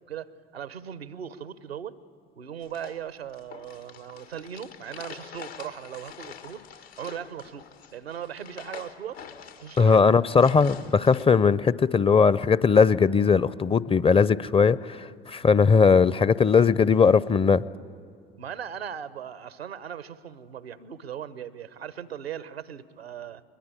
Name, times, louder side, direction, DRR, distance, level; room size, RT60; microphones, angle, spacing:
voice 1, 0.1-2.0 2.4-6.7 7.0-7.7 7.9-9.2 9.6-10.2 18.4-23.4, right 9 dB, 85° right, 17 dB, 0.8 m, -38 dB
sound 1, 2.6-11.3, left 8 dB, 80° left, 1.7 m, -46 dB
voice 2, 9.8-17.6, left 5 dB, 20° left, 20 dB, 0.5 m, -19 dB
22.0 x 21.5 x 9.8 m, 2.3 s
figure-of-eight pair, 60°, 30 cm